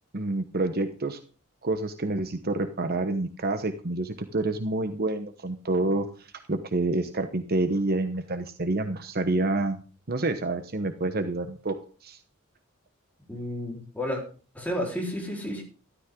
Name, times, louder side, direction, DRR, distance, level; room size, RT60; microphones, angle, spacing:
voice 1, 0.1-1.2 1.6-9.8 10.1-11.7 12.0-12.2, right 2 dB, 45° right, 8 dB, 1.1 m, -28 dB
voice 2, 13.3-14.2 14.5-15.6, equal, 5° left, -1 dB, 4.2 m, -31 dB
13.0 x 12.5 x 3.8 m, 0.37 s
head